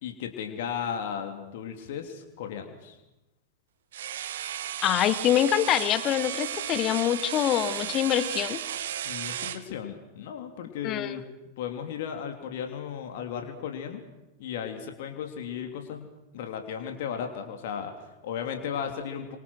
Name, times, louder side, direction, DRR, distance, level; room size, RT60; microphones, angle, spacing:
voice 1, 0.0-3.0 9.0-11.3 11.6-14.0 14.4-16.1 16.3-19.4, left 8 dB, 55° left, 5 dB, 3.2 m, -35 dB
sound 1, 3.9-9.6, right 10 dB, 60° right, 1.4 m, -34 dB
voice 2, 4.8-8.6 10.8-11.2, left 11 dB, 35° left, 13 dB, 1.7 m, -25 dB
29.0 x 25.5 x 6.4 m, 0.98 s
figure-of-eight pair, 90°, 0 cm